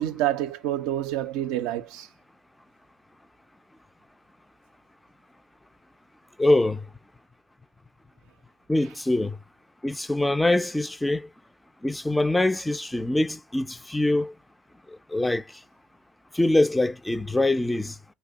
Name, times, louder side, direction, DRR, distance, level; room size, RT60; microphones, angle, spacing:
voice 1, 0.0-2.1, right 13 dB, 80° right, 0.4 m, -28 dB
voice 2, 6.4-6.8 8.7-9.4 9.8-11.3 11.8-14.3 15.1-15.4 16.3-18.0, left 2 dB, 10° left, 0.3 m, -23 dB
2.7 x 2.1 x 3.5 m
supercardioid pair, 85°, 0 cm